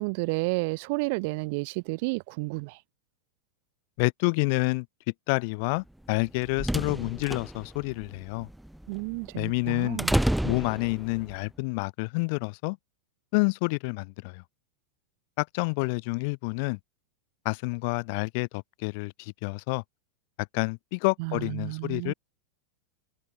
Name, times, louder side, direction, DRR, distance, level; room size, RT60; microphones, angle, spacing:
voice 1, 0.0-2.8 8.9-10.2 21.2-22.1, right 29 dB, 45° right, 5.2 m, -31 dB
voice 2, 4.0-4.8 5.3-8.5 9.3-10.0 10.4-12.8 13.3-14.4 15.4-16.8 17.4-19.8 20.5-22.1, left 31 dB, 45° left, 4.6 m, -28 dB
sound 1, 6.1-11.4, right 1 dB, ahead, 2.0 m, -31 dB
figure-of-eight pair, 90°, 0 cm